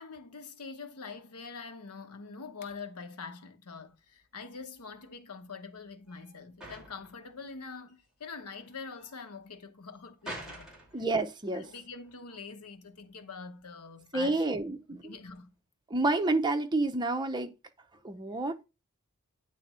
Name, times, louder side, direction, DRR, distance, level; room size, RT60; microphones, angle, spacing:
voice 1, 0.0-10.7 11.5-14.4 14.9-15.5, left 4 dB, 90° left, 1.0 m, -44 dB
sound 1, 3.8-15.6, right 1 dB, 5° right, 2.5 m, -50 dB
voice 2, 10.9-11.6 14.1-15.2 15.9-17.5 18.0-18.6, right 2 dB, 20° right, 0.7 m, -29 dB
8.9 x 3.4 x 4.2 m
head